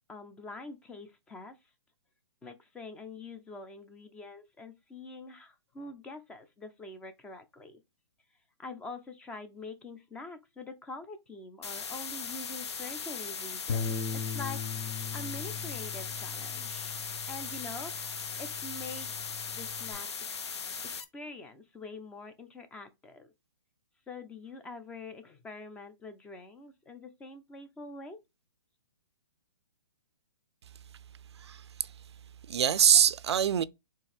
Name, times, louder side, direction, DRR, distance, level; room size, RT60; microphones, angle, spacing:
voice 1, 0.1-1.6 2.4-7.8 8.6-13.9 14.3-14.6 15.1-17.0 17.3-19.1 19.5-20.1 20.9-23.3 24.1-28.2, left 3 dB, 10° left, 0.4 m, -45 dB
sound 1, 11.6-21.0, left 6 dB, 85° left, 0.8 m, -38 dB
Bass guitar, 13.7-19.9, left 6 dB, 65° left, 0.9 m, -39 dB
voice 2, 31.4-31.9 32.5-33.6, right 9 dB, 80° right, 0.4 m, -24 dB
4.5 x 3.3 x 3.2 m
hypercardioid pair, 150°, 14 cm